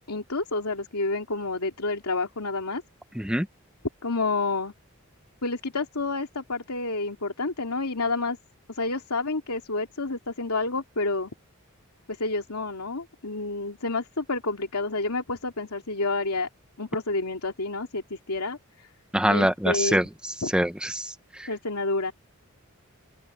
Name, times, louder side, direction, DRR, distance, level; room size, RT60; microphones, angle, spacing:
voice 1, 0.1-2.8 4.0-4.7 5.4-8.4 8.7-11.3 12.1-16.5 16.8-18.9 19.2-20.0 20.4-20.5 21.5-22.1, left 3 dB, 90° left, 2.7 m, -29 dB
voice 2, 3.2-3.5 19.1-20.1 20.5-21.5, equal, 5° right, 1.0 m, -24 dB
open air
head